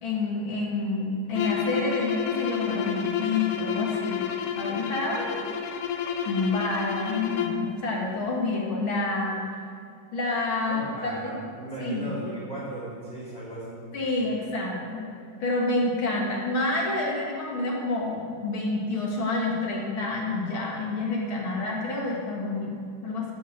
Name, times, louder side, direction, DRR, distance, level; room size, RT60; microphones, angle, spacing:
voice 1, 0.0-4.2 4.6-5.4 6.3-9.4 10.1-11.3 11.8-12.2 13.9-15.1 15.4-23.3, left 2 dB, 45° left, -2 dB, 2.3 m, -28 dB
sound 1, 1.3-7.7, left 8 dB, 75° left, 2.2 m, -30 dB
voice 2, 10.7-13.9, right 2 dB, 20° left, -7 dB, 3.6 m, -36 dB
12.5 x 7.3 x 7.4 m, 2.4 s
omnidirectional pair, 3.8 m